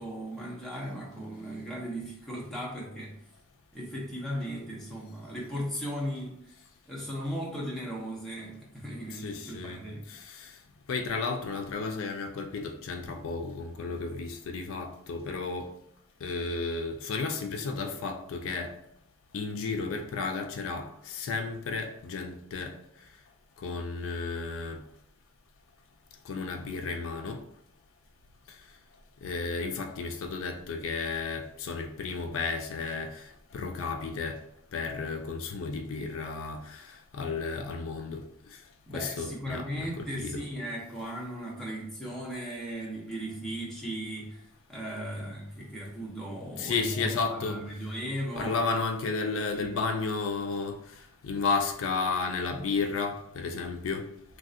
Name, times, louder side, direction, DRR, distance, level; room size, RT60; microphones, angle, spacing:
voice 1, 0.0-3.2 3.7-10.1 38.9-44.4 44.7-48.6 49.2-49.7, equal, ahead, 0.7 m, -37 dB
voice 2, 9.1-9.8 10.1-10.5 10.9-15.7 16.2-18.7 19.3-22.7 23.6-24.8 26.3-27.4 29.2-33.1 33.5-34.4 34.7-36.8 37.1-38.2 38.9-40.5 46.6-47.6 48.4-50.7 51.2-54.0, left 4 dB, 65° left, 0.3 m, -33 dB
3.2 x 2.6 x 2.4 m
head